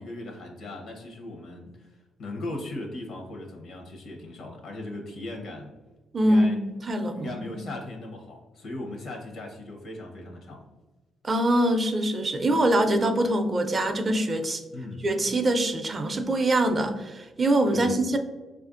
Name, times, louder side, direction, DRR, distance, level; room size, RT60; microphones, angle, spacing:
voice 1, 0.0-5.7 6.2-6.6 7.1-10.6 14.7-15.0 17.7-18.0, left 2 dB, 70° left, 1 dB, 0.8 m, -38 dB
voice 2, 6.1-7.5 11.2-14.6 15.0-18.2, right 1 dB, 35° right, 6 dB, 0.4 m, -24 dB
4.1 x 2.5 x 2.5 m, 1.2 s
cardioid pair, 90°, 0 cm